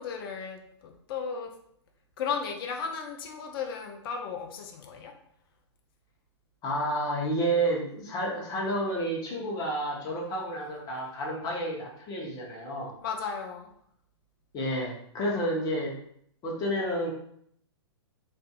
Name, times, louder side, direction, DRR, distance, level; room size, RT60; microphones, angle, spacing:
voice 1, 0.0-1.5 2.2-5.1 13.0-13.7, left 6 dB, 50° left, 4 dB, 0.4 m, -35 dB
voice 2, 6.6-12.9 14.5-15.9 16.4-17.1, right 1 dB, 25° left, -2 dB, 0.7 m, -30 dB
2.5 x 2.5 x 2.3 m, 0.67 s
hypercardioid pair, 120°, 15 cm